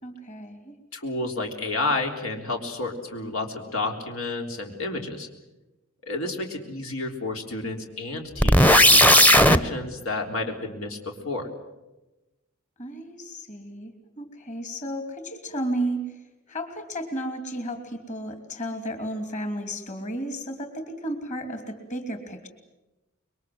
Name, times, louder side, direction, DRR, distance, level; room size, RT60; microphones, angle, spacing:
voice 1, 0.0-0.8 12.8-13.9 14.2-16.0 16.5-22.5, right 1 dB, 35° left, 6 dB, 3.0 m, -33 dB
voice 2, 0.9-5.3 6.0-11.5, left 2 dB, 90° left, 3 dB, 3.7 m, -30 dB
sound 1, 8.4-9.6, equal, 10° left, 0.8 m, -15 dB
26.0 x 23.0 x 7.9 m, 1.0 s
head